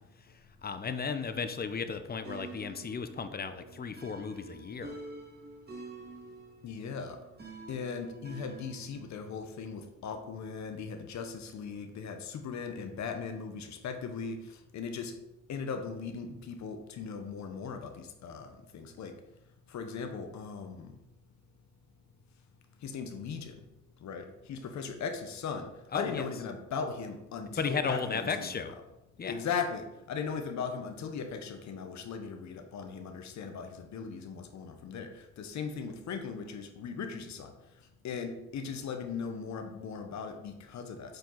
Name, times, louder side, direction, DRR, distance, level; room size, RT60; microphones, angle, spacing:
voice 1, 0.6-5.0 25.9-26.3 27.6-28.7 29.2-29.4, left 5 dB, 30° left, 10 dB, 0.7 m, -34 dB
sound 1, 2.2-9.1, right 3 dB, 35° right, 1.9 m, -48 dB
voice 2, 6.6-7.2 7.7-15.1 15.5-19.1 19.7-20.9 22.8-23.6 24.0-28.7 29.3-37.5 38.0-41.2, left 5 dB, 65° left, 7 dB, 1.0 m, -38 dB
7.8 x 4.6 x 3.9 m, 0.92 s
cardioid pair, 90°, 30 cm